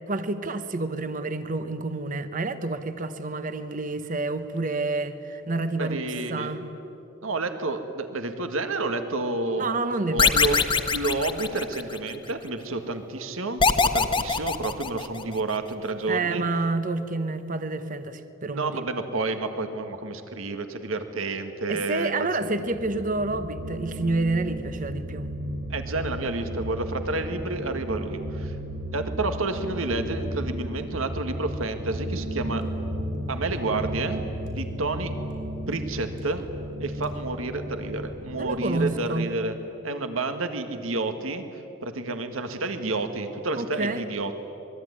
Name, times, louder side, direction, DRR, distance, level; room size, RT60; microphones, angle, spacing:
voice 1, 0.1-6.6 9.6-10.6 16.1-18.8 21.7-25.3 38.4-39.3 43.6-44.0, right 3 dB, 40° right, 10 dB, 1.0 m, -29 dB
voice 2, 5.8-6.6 7.2-9.7 10.1-10.6 10.9-16.4 18.5-22.5 25.7-28.6 28.9-32.6 33.3-35.1 35.7-36.4 36.8-39.5 39.8-41.4 41.8-44.3, right 2 dB, 75° right, 8 dB, 1.9 m, -30 dB
sound 1, 10.2-12.1 13.6-15.4, left 4 dB, 25° left, 1.2 m, -23 dB
sound 2, 22.7-38.9, equal, 60° right, 6.1 m, -34 dB
26.0 x 21.5 x 9.8 m, 3.0 s
head